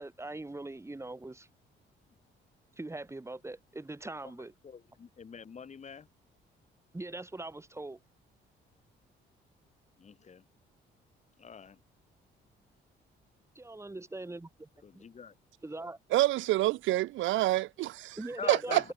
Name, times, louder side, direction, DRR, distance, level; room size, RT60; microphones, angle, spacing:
voice 1, 0.0-1.5 2.8-4.5 6.9-8.0 13.6-14.7 14.9-15.0 15.6-16.0 18.2-18.9, right 2 dB, 15° right, 2.3 m, -41 dB
voice 2, 4.6-6.1 10.0-10.4 11.4-11.8 14.8-15.3 18.4-18.9, left 6 dB, 35° left, 1.1 m, -43 dB
voice 3, 16.1-18.2 18.5-18.9, right 17 dB, 80° right, 0.4 m, -27 dB
cardioid pair, 90°, 20 cm